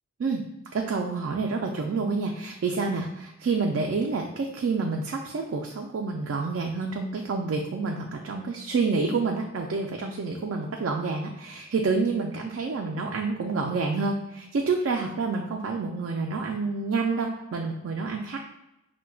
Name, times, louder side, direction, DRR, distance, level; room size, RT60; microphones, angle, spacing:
voice 1, 0.7-18.4, right 4 dB, 65° right, 1 dB, 0.3 m, -28 dB
5.6 x 2.1 x 2.3 m, 0.90 s
head